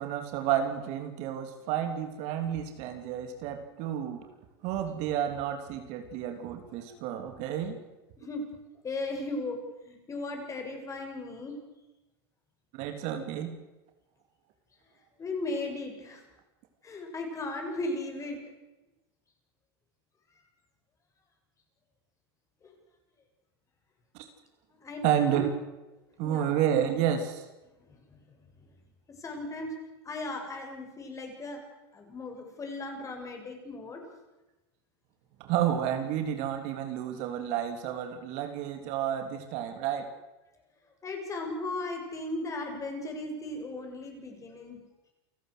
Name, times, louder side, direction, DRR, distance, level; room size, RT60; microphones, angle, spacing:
voice 1, 0.0-4.2 4.6-7.8 12.7-13.5 25.0-25.5 26.2-27.4 35.4-40.1, right 10 dB, 55° right, 6 dB, 3.3 m, -30 dB
voice 2, 6.9-7.3 8.2-8.4 8.8-9.6 9.8-11.6 15.2-16.2 16.8-18.4 22.6-22.7 24.8-25.4 26.2-26.6 27.8-28.2 29.2-29.7 30.0-31.6 31.9-34.0 41.0-44.8, left 2 dB, 25° left, 3 dB, 6.8 m, -37 dB
28.5 x 14.5 x 8.1 m, 1.0 s
supercardioid pair, 115°, 14 cm